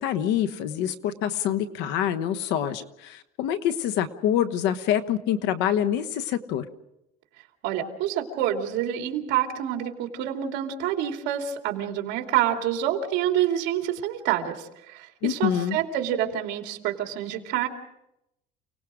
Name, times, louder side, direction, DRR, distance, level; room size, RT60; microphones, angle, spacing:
voice 1, 0.0-6.7 15.2-15.8, left 10 dB, 70° left, 10 dB, 1.2 m, -26 dB
voice 2, 7.6-17.7, right 11 dB, 70° right, 3 dB, 3.0 m, -27 dB
29.5 x 19.0 x 5.0 m, 0.86 s
cardioid pair, 155°, 18 cm